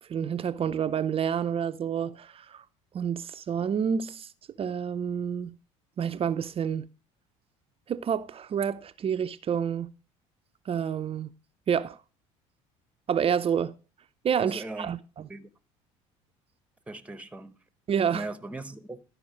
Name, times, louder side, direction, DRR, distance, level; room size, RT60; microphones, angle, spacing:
voice 1, 0.1-2.6 2.9-4.3 4.6-5.5 6.0-6.9 7.9-9.9 10.7-11.3 11.7-12.0 13.1-13.7 14.2-15.3 17.9-18.2, right 8 dB, 35° right, 0.6 m, -28 dB
voice 2, 14.4-14.9 15.3-15.5 16.9-17.6 18.1-19.0, right 2 dB, 10° right, 1.0 m, -39 dB
12.5 x 4.8 x 4.9 m
hypercardioid pair, 80°, 16 cm